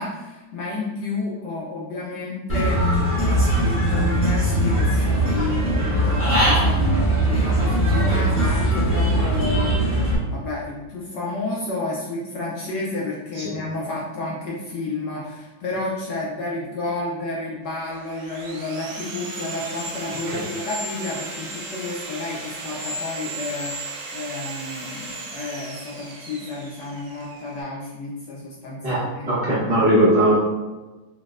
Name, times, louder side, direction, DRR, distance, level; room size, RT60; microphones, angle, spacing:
voice 1, 0.0-3.0 3.2-29.9, left 2 dB, 80° left, -4 dB, 1.0 m, -31 dB
Human voice / Bird, 2.5-10.1, right 1 dB, 20° left, 0.3 m, -20 dB
Sawing, 17.7-27.6, right 2 dB, 70° right, 1.0 m, -35 dB
voice 2, 28.8-30.3, right 1 dB, 40° right, -8 dB, 0.8 m, -19 dB
5.0 x 2.1 x 2.4 m, 1.1 s
omnidirectional pair, 2.4 m